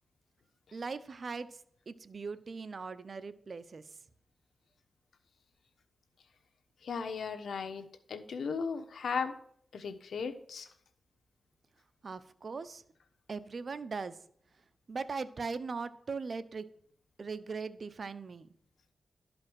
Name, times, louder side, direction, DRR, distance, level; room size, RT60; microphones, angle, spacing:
voice 1, 0.7-1.6 1.9-3.8 12.0-12.8 13.3-14.2 14.9-16.7 17.2-18.5, right 4 dB, 60° right, 13 dB, 0.7 m, -39 dB
voice 2, 6.8-9.3 9.7-10.7, left 5 dB, 90° left, 8 dB, 1.0 m, -36 dB
12.0 x 5.2 x 6.1 m, 0.66 s
cardioid pair, 65°, 0 cm